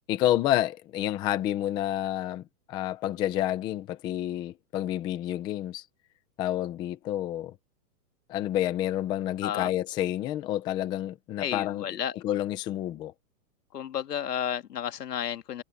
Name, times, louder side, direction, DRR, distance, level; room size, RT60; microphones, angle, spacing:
voice 1, 0.1-5.8 6.4-7.5 8.3-11.9 12.2-13.1, left 13 dB, 10° left, 0.6 m, -29 dB
voice 2, 11.4-12.2 13.7-15.6, left 9 dB, 90° left, 2.2 m, -32 dB
hypercardioid pair, 160°, 46 cm